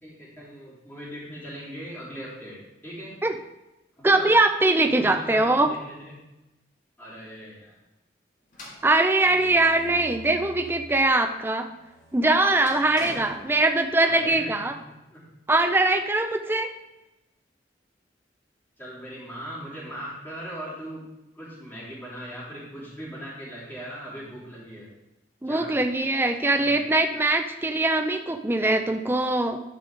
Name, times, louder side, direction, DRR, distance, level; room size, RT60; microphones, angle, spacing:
voice 1, 0.0-3.2 4.0-4.3 4.8-6.2 7.0-7.8 13.9-15.3 18.8-21.0 21.3-24.9 25.4-25.8 26.5-27.2, equal, 10° left, -9 dB, 3.5 m, -39 dB
voice 2, 4.0-5.7 8.8-11.7 12.1-14.7 15.5-16.7 25.4-29.6, right 2 dB, 10° right, 5 dB, 0.4 m, -22 dB
sound 1, 8.5-10.9 11.4-14.2, equal, 45° left, 2.0 m, -45 dB
12.0 x 5.4 x 3.9 m, 0.97 s
head